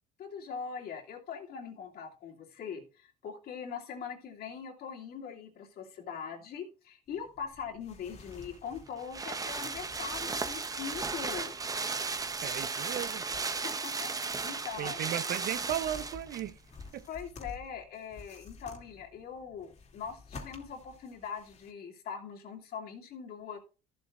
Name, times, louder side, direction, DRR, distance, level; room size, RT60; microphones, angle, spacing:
voice 1, 0.2-11.5 13.6-15.0 17.1-23.6, left 7 dB, 65° left, 2.7 m, -42 dB
sound 1, 7.1-21.7, left 4 dB, 40° left, 2.5 m, -52 dB
sound 2, 8.3-16.5 16.8-16.9, right 4 dB, 20° right, 0.7 m, -35 dB
voice 2, 12.4-13.3 14.8-16.6 16.9-17.1, right 11 dB, 70° right, 0.8 m, -36 dB
14.5 x 7.9 x 2.5 m
cardioid pair, 110°, 17 cm